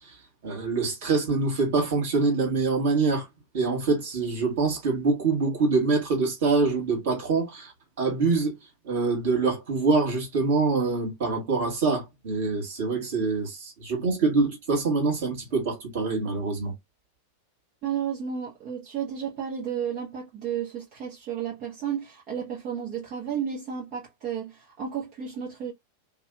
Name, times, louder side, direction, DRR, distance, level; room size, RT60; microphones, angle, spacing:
voice 1, 0.4-3.2 3.5-7.7 8.0-8.6 8.9-16.7, right 4 dB, 55° right, 1.6 m, -25 dB
voice 2, 17.8-25.7, right 8 dB, 35° right, 1.1 m, -32 dB
2.7 x 2.3 x 2.4 m
figure-of-eight pair, 90°, 0 cm